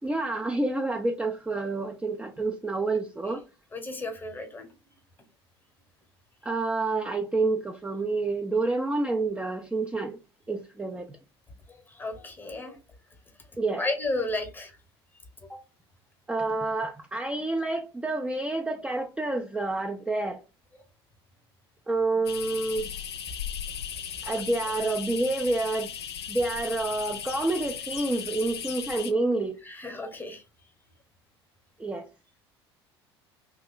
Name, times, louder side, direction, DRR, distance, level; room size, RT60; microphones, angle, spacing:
voice 1, 0.0-3.4 6.4-10.2 10.5-11.2 13.6-13.9 16.3-20.4 21.9-22.9 24.2-25.9 26.3-29.6 31.8-32.1, right 2 dB, 10° right, 0.4 m, -28 dB
voice 2, 3.7-4.7 11.7-12.8 13.8-14.8 15.5-15.6 24.3-24.4 29.7-30.4, left 2 dB, 15° left, 0.9 m, -33 dB
sound 1, 22.2-29.1, left 8 dB, 75° left, 0.4 m, -37 dB
2.8 x 2.3 x 3.7 m
figure-of-eight pair, 65°, 14 cm